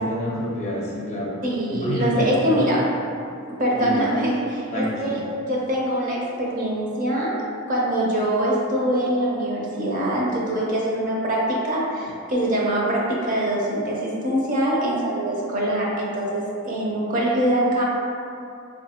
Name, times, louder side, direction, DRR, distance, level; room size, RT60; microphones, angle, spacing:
voice 1, 0.0-1.3 1.7-2.7 3.8-4.0 4.7-5.2, equal, 35° left, -5 dB, 0.6 m, -28 dB
voice 2, 1.4-2.8 3.6-5.2 5.5-7.3 7.7-17.8, right 1 dB, 40° right, -4 dB, 0.6 m, -23 dB
4.0 x 2.4 x 2.8 m, 2.5 s
head